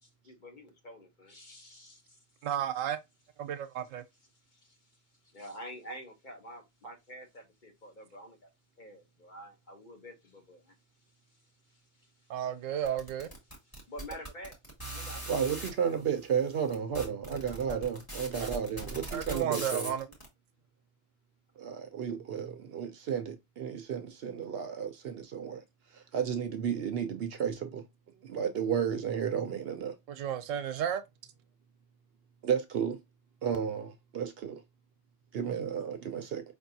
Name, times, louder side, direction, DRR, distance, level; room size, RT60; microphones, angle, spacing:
voice 1, 0.0-2.2 4.5-8.5 8.8-10.8 11.3-11.4 11.7-12.3 13.6-14.6 14.9-16.0, equal, 40° left, 0.9 m, -49 dB
voice 2, 2.4-3.0 3.4-4.0 6.8-6.9 12.3-13.3 17.7-17.8 18.4-18.5 19.1-20.1 30.1-31.0, right 9 dB, 90° right, 1.0 m, -33 dB
sound 1, 12.9-15.7 16.4-16.5 16.7-20.2, right 1 dB, 20° left, 1.3 m, -40 dB
voice 3, 15.3-19.9 21.6-25.6 25.9-27.8 28.2-29.9 32.4-33.0 33.4-34.6 35.3-36.4, right 7 dB, 60° right, 0.7 m, -33 dB
5.1 x 2.7 x 2.6 m
omnidirectional pair, 1.3 m